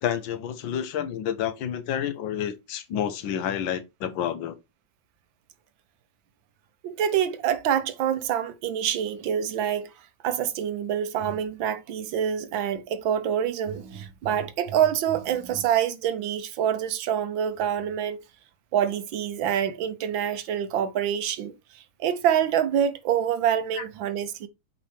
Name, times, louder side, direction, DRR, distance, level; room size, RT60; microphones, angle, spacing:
voice 1, 0.0-4.6 23.7-23.8, left 9 dB, 85° left, 1.7 m, -29 dB
voice 2, 6.8-9.9 10.2-18.2 18.7-24.5, right 9 dB, 90° right, 1.7 m, -26 dB
7.5 x 5.1 x 3.3 m
omnidirectional pair, 2.0 m